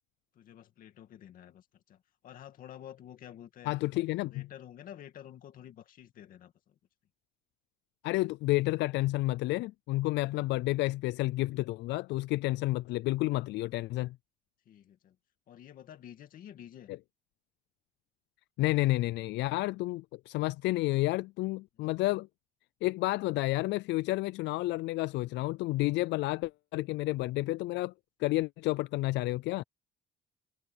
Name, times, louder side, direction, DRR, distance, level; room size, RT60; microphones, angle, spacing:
voice 1, 0.4-3.8 4.2-6.7 14.7-15.2 15.5-16.9, left 10 dB, 50° left, 2.3 m, -50 dB
voice 2, 3.7-4.5 8.0-14.2 18.6-22.3 22.8-27.9 28.2-29.6, left 19 dB, 85° left, 0.4 m, -30 dB
cardioid pair, 180°, 18 cm